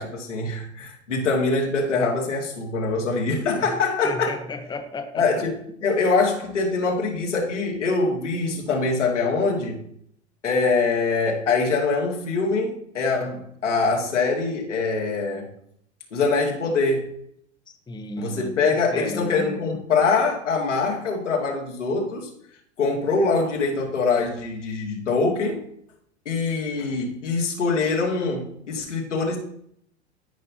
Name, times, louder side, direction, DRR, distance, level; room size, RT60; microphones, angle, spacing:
voice 1, 0.0-4.3 5.1-5.5 5.8-9.8 10.4-15.5 16.1-17.1 18.2-22.3 22.8-25.6 26.3-29.4, left 4 dB, 80° left, -1 dB, 2.2 m, -23 dB
voice 2, 4.0-5.3 17.7-19.8, left 3 dB, 10° left, 6 dB, 0.9 m, -34 dB
13.5 x 5.7 x 2.8 m, 0.68 s
hypercardioid pair, 90°, 36 cm